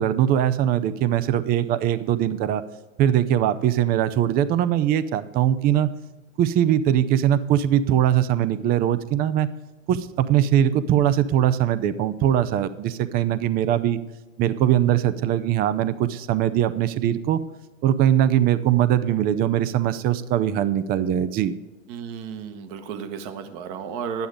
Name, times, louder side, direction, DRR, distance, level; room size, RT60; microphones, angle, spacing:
voice 1, 0.0-2.6 3.0-5.9 6.4-9.5 9.9-14.0 14.4-17.4 17.8-21.5, right 11 dB, 25° right, 14 dB, 0.5 m, -21 dB
voice 2, 21.9-24.3, right 7 dB, 45° right, 8 dB, 1.3 m, -33 dB
11.5 x 9.2 x 5.0 m, 1.2 s
hypercardioid pair, 115°, 39 cm